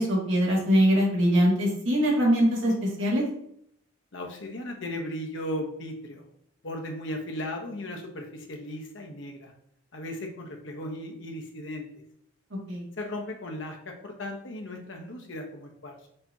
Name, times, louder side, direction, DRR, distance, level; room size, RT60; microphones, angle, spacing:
voice 1, 0.0-3.2 12.7-12.8, equal, 70° right, -4 dB, 1.8 m, -22 dB
voice 2, 4.1-6.2 6.6-9.5 9.9-11.9 13.0-15.9, left 1 dB, 65° left, 2 dB, 0.9 m, -36 dB
6.6 x 2.9 x 2.7 m, 0.71 s
head